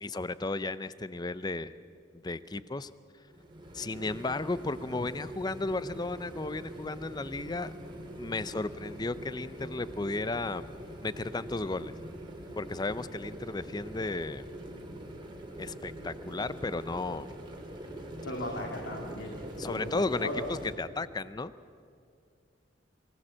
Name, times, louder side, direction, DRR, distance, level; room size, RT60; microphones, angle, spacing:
voice 1, 0.0-1.7 2.2-2.9 3.7-7.7 8.2-10.7 11.0-11.9 12.6-14.5 15.6-17.3 19.6-21.5, left 3 dB, 20° left, 15 dB, 0.5 m, -34 dB
sound 1, 3.3-20.8, right 1 dB, 25° right, 2.3 m, -43 dB
voice 2, 18.2-19.4 19.7-20.4, left 1 dB, 85° left, 0 dB, 2.4 m, -37 dB
23.5 x 16.5 x 7.4 m, 2.3 s
head